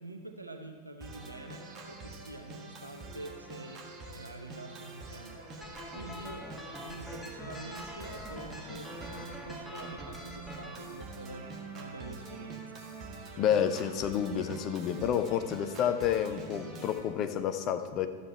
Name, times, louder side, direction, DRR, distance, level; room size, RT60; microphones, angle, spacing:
voice 1, 0.0-5.5 5.9-6.5 6.8-12.8, right 2 dB, 85° right, 5 dB, 0.7 m, -46 dB
Organ, 1.0-17.0, right 3 dB, 30° right, 1.5 m, -46 dB
sound 1, 5.6-10.8, equal, ahead, 1.3 m, -45 dB
voice 2, 13.4-18.1, left 9 dB, 35° left, 9 dB, 0.7 m, -29 dB
12.5 x 7.6 x 4.3 m, 1.5 s
figure-of-eight pair, 90°, 0 cm